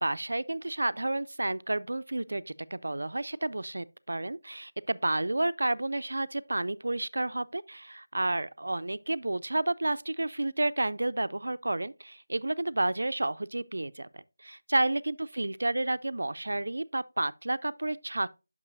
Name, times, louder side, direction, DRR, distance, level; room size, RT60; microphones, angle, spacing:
voice 1, 0.0-18.3, right 2 dB, 80° right, 0.3 m, -31 dB
8.9 x 6.0 x 2.5 m
figure-of-eight pair, 170°, 0 cm